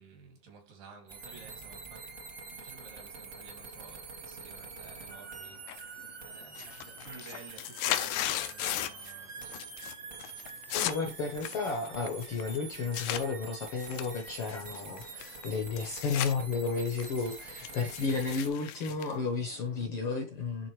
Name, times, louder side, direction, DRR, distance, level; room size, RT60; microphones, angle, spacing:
voice 1, 0.0-2.1 2.5-5.6 5.9-9.6, right 5 dB, 85° right, 4.1 m, -53 dB
sound 1, 1.1-18.5, right 4 dB, 55° right, 0.9 m, -46 dB
sound 2, 5.7-6.1 6.4-9.1 9.4-9.9 10.2-13.2 13.8-16.3 16.7-19.9, left 13 dB, 85° left, 2.3 m, -36 dB
voice 2, 10.7-20.7, left 4 dB, 65° left, 1.4 m, -33 dB
11.0 x 3.9 x 3.2 m
omnidirectional pair, 3.8 m